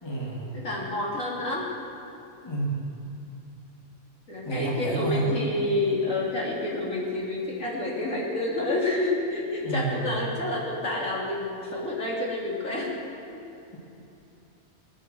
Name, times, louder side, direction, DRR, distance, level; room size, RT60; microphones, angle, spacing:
voice 1, 0.0-0.5 2.4-2.8 4.4-5.2 9.6-10.1, right 2 dB, 20° left, -3 dB, 2.5 m, -29 dB
voice 2, 0.5-1.7 4.3-12.9 13.3-13.4, left 2 dB, 70° left, -4 dB, 3.3 m, -29 dB
20.0 x 9.1 x 7.7 m, 2.9 s
omnidirectional pair, 1.4 m